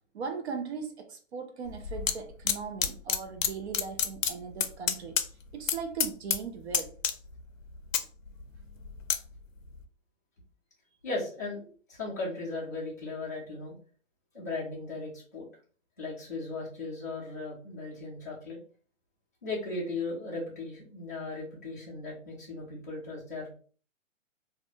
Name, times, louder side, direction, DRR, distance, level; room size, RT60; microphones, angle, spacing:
voice 1, 0.1-5.2 5.5-6.9, right 6 dB, 55° right, 0.5 m, -38 dB
sound 1, 1.7-2.1 2.5-3.5 3.7-5.3 5.5-5.8 6.0-6.4 6.7-7.4 7.7-9.2 9.7-9.8, left 8 dB, 75° left, 0.5 m, -28 dB
voice 2, 11.0-13.8 14.3-15.5 16.0-18.6 19.4-23.5, left 3 dB, 15° left, 0.4 m, -37 dB
2.4 x 2.1 x 2.6 m
hypercardioid pair, 145°, 39 cm